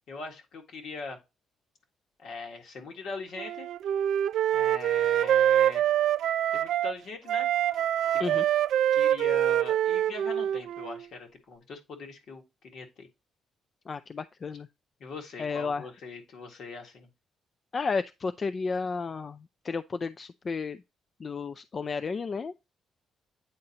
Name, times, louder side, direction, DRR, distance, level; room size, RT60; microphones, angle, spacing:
voice 1, 0.1-1.2 2.2-3.7 4.5-5.9 6.5-7.5 8.3-8.4 8.9-13.1 15.0-17.1, left 3 dB, 70° left, 1.7 m, -41 dB
Wind instrument woodwind instrument, 3.4-6.9 7.3-11.0, right 11 dB, 75° right, 0.3 m, -25 dB
voice 2, 13.9-14.7 15.4-15.8 17.7-20.8 21.2-22.5, left 4 dB, 40° left, 0.3 m, -32 dB
8.8 x 4.0 x 2.8 m
cardioid pair, 90°, 0 cm